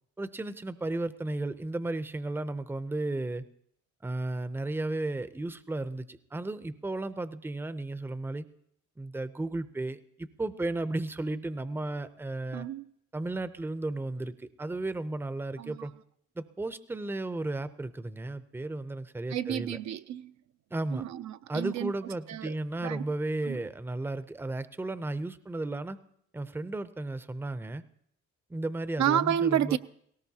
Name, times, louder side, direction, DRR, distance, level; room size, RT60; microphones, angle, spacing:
voice 1, 0.2-3.4 4.0-8.5 9.0-12.7 13.1-15.9 16.4-19.8 20.7-21.0 21.5-26.0 26.3-27.8 28.5-29.8, right 2 dB, 5° right, 0.5 m, -34 dB
voice 2, 12.5-12.9 15.6-15.9 19.3-20.3 20.9-21.9 22.3-22.5 22.8-23.0 23.4-23.6 29.0-29.8, right 10 dB, 65° right, 0.5 m, -30 dB
18.0 x 17.5 x 2.8 m
cardioid pair, 80°, 31 cm